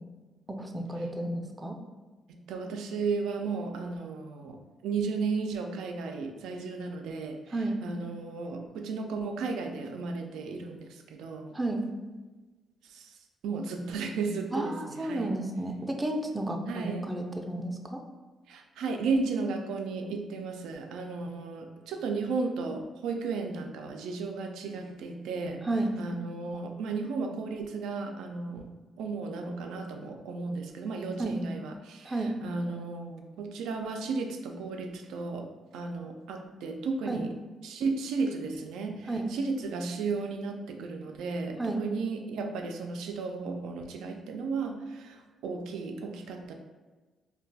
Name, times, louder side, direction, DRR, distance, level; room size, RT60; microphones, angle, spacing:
voice 1, 0.5-1.8 7.5-7.8 11.5-11.9 14.5-18.0 25.6-25.9 31.2-31.4 32.0-32.4 37.1-37.2 39.1-39.3 41.6-41.8, right 2 dB, 15° right, 3 dB, 0.4 m, -32 dB
voice 2, 2.3-7.6 7.8-11.5 12.8-13.1 13.4-15.3 16.7-17.1 18.5-25.6 26.0-28.7 29.0-37.3 37.6-46.5, right 4 dB, 85° right, 4 dB, 0.3 m, -34 dB
2.3 x 2.2 x 3.9 m, 1.3 s
cardioid pair, 90°, 0 cm